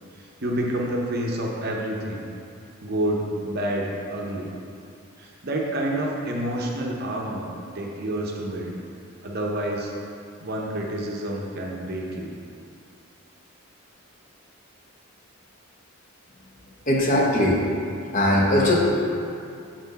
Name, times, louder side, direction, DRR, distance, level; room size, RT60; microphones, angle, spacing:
voice 1, 0.2-2.2 2.8-4.5 5.2-8.8 9.2-9.9 10.4-12.4, right 1 dB, 45° right, -1 dB, 0.7 m, -28 dB
voice 2, 16.9-17.6 18.1-18.8, left 1 dB, 35° left, -2 dB, 0.8 m, -19 dB
6.2 x 4.4 x 4.0 m, 2.5 s
head